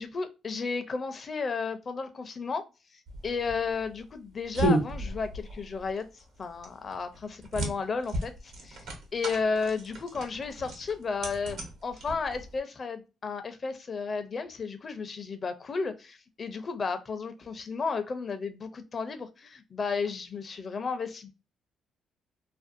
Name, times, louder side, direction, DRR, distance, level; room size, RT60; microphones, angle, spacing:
voice 1, 0.0-2.6 2.9-11.6 11.8-21.3, left 4 dB, 40° left, 0.5 m, -33 dB
sound 1, 3.1-12.6, right 1 dB, 80° right, 0.9 m, -34 dB
2.5 x 2.3 x 2.5 m
cardioid pair, 90°, 0 cm